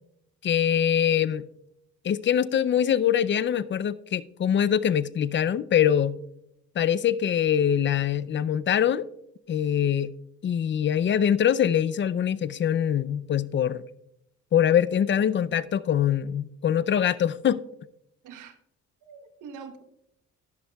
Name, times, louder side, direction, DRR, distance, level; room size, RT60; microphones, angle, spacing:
voice 1, 0.4-1.5 2.0-6.2 6.8-9.1 9.5-10.1 10.4-13.8 14.5-17.6, left 9 dB, 40° left, 17 dB, 0.4 m, -23 dB
voice 2, 18.2-18.6 19.0-19.8, right 6 dB, 85° right, 9 dB, 1.1 m, -44 dB
12.0 x 11.0 x 2.3 m, 0.78 s
cardioid pair, 90°, 30 cm